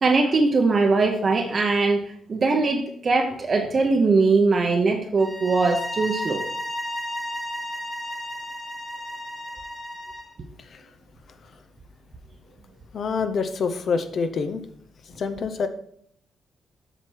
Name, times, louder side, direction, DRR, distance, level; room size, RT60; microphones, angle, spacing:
voice 1, 0.0-2.0 2.3-6.4, right 3 dB, 30° right, 3 dB, 0.8 m, -21 dB
sound 1, 5.2-10.3, left 1 dB, 10° left, 1.3 m, -33 dB
voice 2, 12.9-14.6 15.1-15.7, left 5 dB, 45° left, 10 dB, 0.6 m, -26 dB
7.9 x 5.9 x 4.5 m, 0.67 s
wide cardioid pair, 165°, 0 cm